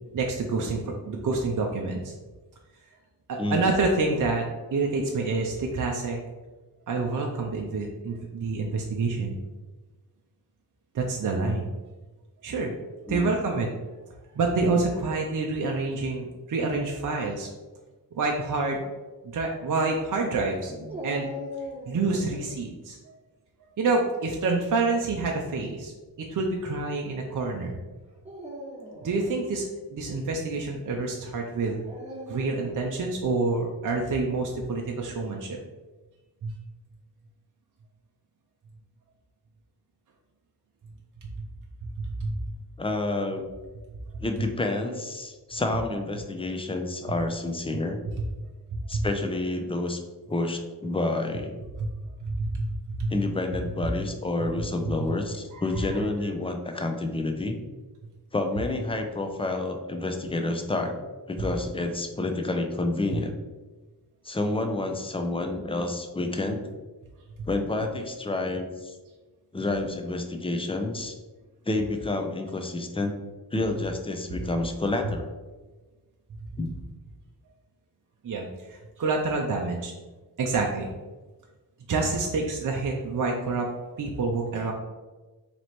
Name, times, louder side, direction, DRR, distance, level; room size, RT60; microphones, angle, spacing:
voice 1, 0.1-2.1 3.3-6.2 6.9-9.4 10.9-11.7 12.4-12.7 13.1-13.7 14.3-17.5 18.1-18.8 19.2-20.7 21.0-21.3 21.9-23.0 23.8-25.9 26.2-27.8 29.0-31.8 32.3-35.6 36.4-36.5 41.4-41.5 41.8-42.4 44.1-44.2 48.2-48.3 48.7-49.1 51.8-51.9 52.2-53.2 54.8-54.9 55.5-55.9 78.2-79.9 80.4-80.9 81.9-83.7 84.0-84.7, right 3 dB, 50° right, 1 dB, 0.6 m, -27 dB
voice 2, 13.1-13.4 20.7-20.9 42.8-43.5 44.2-48.0 48.9-50.0 50.3-51.6 53.1-57.6 58.3-61.0 61.3-63.4 64.2-66.6 67.5-69.0 69.5-71.2 71.7-73.1 73.5-75.3 76.6-76.7, left 2 dB, 15° left, 5 dB, 0.5 m, -29 dB
Dog, 20.9-22.6 24.6-25.1 25.9-26.0 28.1-29.4 31.9-32.9, equal, 15° right, 1.1 m, -39 dB
3.1 x 3.0 x 4.2 m, 1.2 s
cardioid pair, 70°, 40 cm